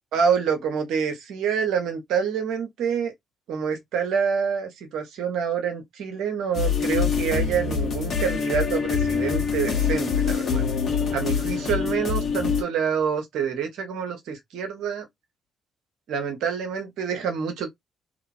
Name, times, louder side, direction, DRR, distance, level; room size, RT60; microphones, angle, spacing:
voice 1, 0.1-3.1 3.5-10.6 11.1-15.1 16.1-17.7, right 7 dB, 70° right, 1.1 m, -27 dB
sound 1, 6.5-12.6, left 6 dB, 55° left, 1.4 m, -25 dB
3.1 x 2.9 x 2.6 m
hypercardioid pair, 45°, 0 cm